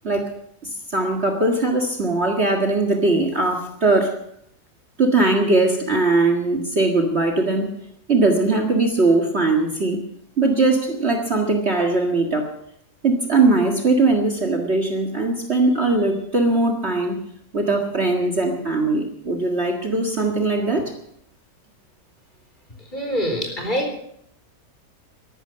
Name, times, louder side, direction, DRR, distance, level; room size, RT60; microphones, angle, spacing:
voice 1, 0.6-4.2 5.0-7.7 8.1-10.0 10.4-12.5 13.0-17.2 17.5-20.9, right 2 dB, 40° right, 4 dB, 2.0 m, -20 dB
voice 2, 22.9-24.0, equal, 25° left, 3 dB, 4.2 m, -25 dB
14.0 x 12.5 x 7.4 m, 0.71 s
omnidirectional pair, 1.8 m